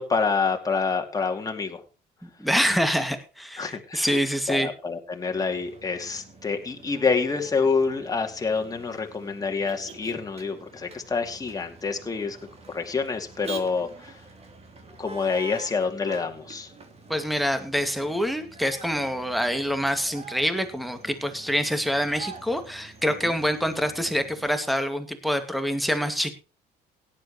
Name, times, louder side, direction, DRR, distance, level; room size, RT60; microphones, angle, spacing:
voice 1, 0.0-1.8 3.6-4.2 4.5-12.4 12.7-14.2 15.0-16.7 23.2-23.3, left 4 dB, 20° left, 4 dB, 2.6 m, -27 dB
voice 2, 2.2-4.7 17.1-26.3, equal, ahead, 9 dB, 2.2 m, -26 dB
Motor vehicle (road), 5.3-24.5, right 4 dB, 40° right, 3.3 m, -46 dB
17.5 x 11.0 x 3.1 m, 0.31 s
cardioid pair, 110°, 17 cm